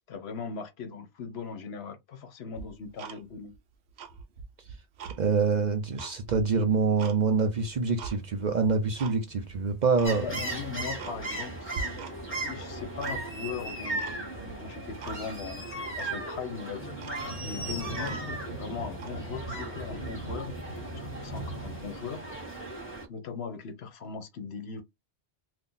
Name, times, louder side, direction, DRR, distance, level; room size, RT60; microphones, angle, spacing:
voice 1, 0.1-3.5 10.2-12.0 12.4-17.0 17.4-20.6 21.1-22.2 23.1-24.8, left 5 dB, 70° left, 1.0 m, -39 dB
Tick-tock, 2.6-3.6 3.9-5.2 5.6-7.2 7.6-8.2 8.6-9.2 9.5-9.6 9.9-10.2 10.6-10.7 11.0-11.5 11.7-12.4 12.7-13.5 14.0-14.6 15.0-15.2 15.5-15.6 16.0-16.2 16.7-16.8 17.0-18.5 18.9-19.2, right 6 dB, 75° right, 1.0 m, -43 dB
voice 2, 5.2-10.3, right 4 dB, 50° right, 0.6 m, -26 dB
sound 1, 7.7-21.9, right 1 dB, 40° left, 1.5 m, -44 dB
sound 2, 10.0-23.1, right 2 dB, 10° left, 1.2 m, -37 dB
2.7 x 2.5 x 3.8 m
omnidirectional pair, 1.1 m